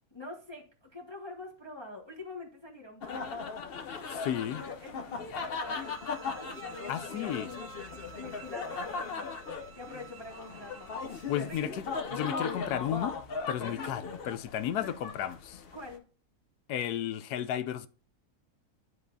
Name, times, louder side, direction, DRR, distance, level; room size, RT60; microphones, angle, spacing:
voice 1, 0.1-3.5 4.0-10.9 11.5-11.7 13.8-14.0 15.7-16.1, left 3 dB, 20° left, 1.0 m, -46 dB
sound 1, 3.0-15.9, left 4 dB, 50° left, 0.7 m, -38 dB
voice 2, 4.2-4.6 6.9-7.5 11.3-13.2 13.5-15.6 16.7-17.9, left 10 dB, 90° left, 1.1 m, -33 dB
sound 2, 5.5-11.7, right 10 dB, 65° right, 0.8 m, -51 dB
10.5 x 3.8 x 2.6 m
omnidirectional pair, 1.6 m